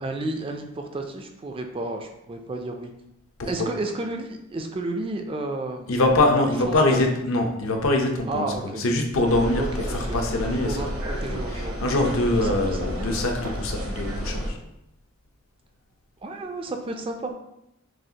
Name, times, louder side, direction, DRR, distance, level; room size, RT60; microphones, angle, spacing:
voice 1, 0.0-2.9 3.5-5.9 6.7-7.0 8.3-8.8 9.6-10.2 10.7-11.7 12.4-12.6 16.2-17.3, right 2 dB, 25° right, 4 dB, 0.3 m, -31 dB
voice 2, 3.4-3.7 5.9-10.8 11.3-14.6, left 2 dB, 70° left, 3 dB, 0.6 m, -24 dB
sound 1, 9.2-14.5, equal, 65° right, 0.7 m, -31 dB
6.2 x 2.4 x 2.8 m, 0.83 s
head